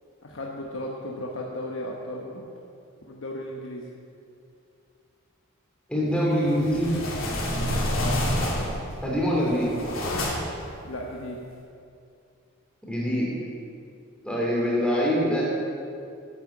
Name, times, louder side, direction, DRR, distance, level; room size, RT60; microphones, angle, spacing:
voice 1, 0.2-2.5 3.1-3.9 7.9-8.2 10.8-11.4, left 1 dB, 70° left, -2 dB, 1.1 m, -35 dB
voice 2, 5.9-6.9 8.5-8.6 9.0-9.7 12.9-13.3 14.2-15.5, equal, 5° left, -5 dB, 2.8 m, -24 dB
sound 1, 6.4-8.9 9.4-10.6, left 1 dB, 85° left, 2.9 m, -28 dB
10.5 x 8.7 x 7.3 m, 2.5 s
head